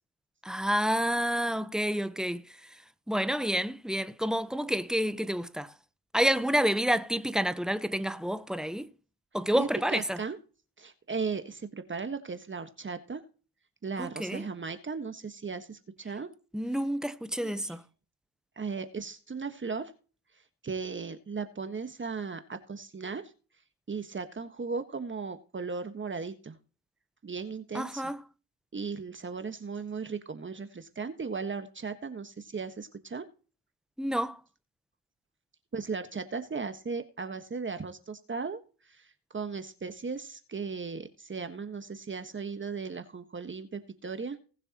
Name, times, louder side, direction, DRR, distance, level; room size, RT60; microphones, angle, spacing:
voice 1, 0.4-2.8 3.1-5.7 6.1-8.9 9.3-10.2 14.0-14.4 16.5-17.8 27.7-28.2 34.0-34.4, equal, ahead, 0.9 m, -29 dB
voice 2, 9.5-10.4 10.8-13.2 13.8-16.3 17.4-17.6 18.6-19.9 20.6-23.2 23.9-26.6 27.2-28.0 28.7-33.2 35.7-38.6 38.9-39.1 39.3-44.4, right 5 dB, 30° right, 1.5 m, -36 dB
19.5 x 6.7 x 3.0 m
cardioid pair, 85°, 40 cm